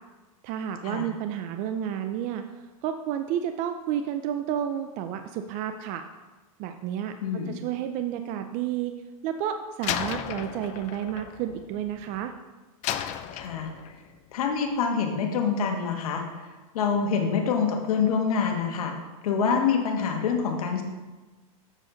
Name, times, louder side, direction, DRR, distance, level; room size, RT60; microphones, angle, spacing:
voice 1, 0.4-2.4 2.8-6.0 6.6-8.9 9.2-12.3, right 10 dB, 45° right, 7 dB, 0.5 m, -31 dB
voice 2, 7.2-7.6 13.3-13.7 14.3-16.5 16.7-18.9 19.2-20.8, left 6 dB, 80° left, 2 dB, 1.5 m, -26 dB
Slam, 9.8-12.3 12.8-14.1, left 11 dB, 40° left, 0.5 m, -34 dB
7.3 x 6.7 x 3.9 m, 1.2 s
supercardioid pair, 130°, 18 cm